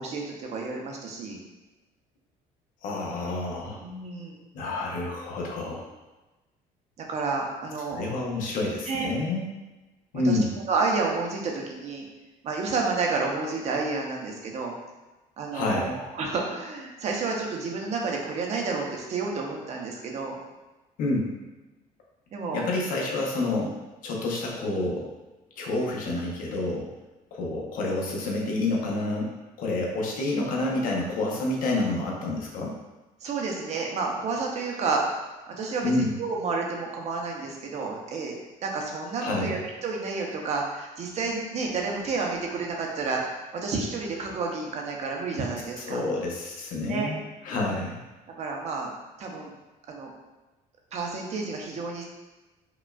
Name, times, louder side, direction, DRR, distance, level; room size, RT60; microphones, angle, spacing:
voice 1, 0.0-1.4 3.8-4.4 7.0-8.0 8.9-9.1 10.2-10.4 10.7-12.1 12.4-14.7 15.4-20.4 22.3-22.6 33.2-35.0 35.5-38.3 38.6-46.0 46.8-47.1 48.4-48.9 49.2-49.5 49.9-50.1 50.9-52.0, right 4 dB, 50° right, 0 dB, 0.7 m, -30 dB
voice 2, 2.8-3.8 4.5-5.9 7.9-9.4 10.1-10.5 15.5-16.0 21.0-21.3 22.5-23.8 24.0-25.1 25.6-26.9 27.3-29.3 29.6-32.7 35.8-36.1 39.2-39.5 45.9-48.0, left 2 dB, 65° left, -2 dB, 0.8 m, -28 dB
5.0 x 2.3 x 2.3 m, 1.1 s
cardioid pair, 125°, 15 cm